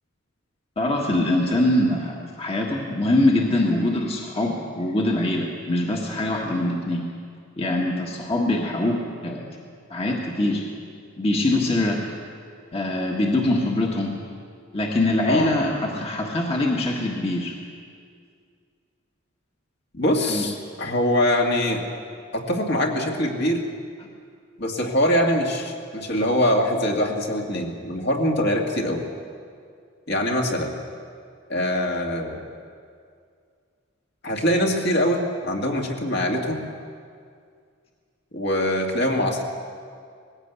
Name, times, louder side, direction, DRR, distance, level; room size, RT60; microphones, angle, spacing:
voice 1, 0.8-7.1 7.6-9.6 9.9-10.7 11.2-12.0 12.7-14.1 14.7-17.6 20.3-20.5, left 1 dB, 30° left, -1 dB, 1.7 m, -23 dB
voice 2, 19.9-21.8 22.3-23.6 24.6-29.0 30.1-30.7 31.5-32.4 34.2-36.6 38.3-39.4, left 1 dB, 55° left, 1 dB, 2.3 m, -23 dB
20.0 x 16.0 x 8.3 m, 2.2 s
head